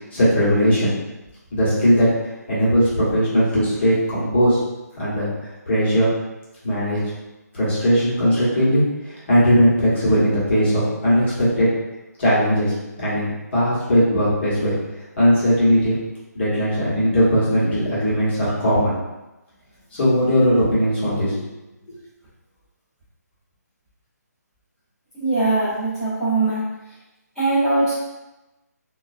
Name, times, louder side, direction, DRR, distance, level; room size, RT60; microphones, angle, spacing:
voice 1, 0.1-0.9 1.5-2.1 2.5-4.6 5.0-6.1 6.6-7.0 7.5-11.7 12.2-14.8 15.2-15.9 16.3-19.0 19.9-21.4, equal, 40° left, -10 dB, 1.1 m, -19 dB
voice 2, 25.1-26.6 27.3-28.0, right 2 dB, ahead, -22 dB, 1.0 m, -21 dB
2.2 x 2.2 x 2.4 m, 1.0 s
hypercardioid pair, 165°, 9 cm